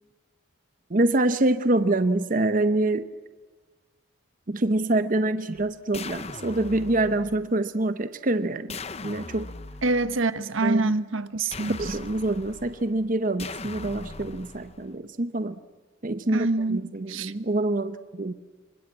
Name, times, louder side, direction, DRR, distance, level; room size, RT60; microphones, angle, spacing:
voice 1, 0.9-3.1 4.5-8.8 9.0-9.5 10.6-10.9 11.8-15.5 16.0-18.3, right 2 dB, 40° right, 0.8 m, -25 dB
sound 1, 5.6-7.5 8.7-10.3 11.5-13.0 13.4-15.0, left 3 dB, 30° left, 0.8 m, -40 dB
voice 2, 9.8-11.8 16.3-16.8 17.1-17.3, right 3 dB, 75° right, 1.2 m, -25 dB
26.5 x 24.5 x 8.8 m
head